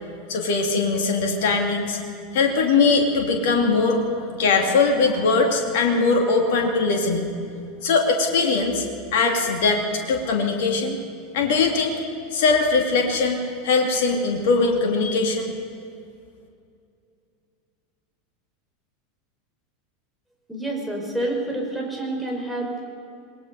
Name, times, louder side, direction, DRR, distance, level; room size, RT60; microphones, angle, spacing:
voice 1, 0.3-2.0 2.3-7.3 7.8-8.8 9.1-11.0 11.3-12.0 12.3-15.5, left 4 dB, 55° left, 2 dB, 2.5 m, -21 dB
voice 2, 20.5-22.9, right 1 dB, ahead, -1 dB, 5.2 m, -28 dB
26.5 x 19.5 x 5.3 m, 2.4 s
figure-of-eight pair, 80°, 0 cm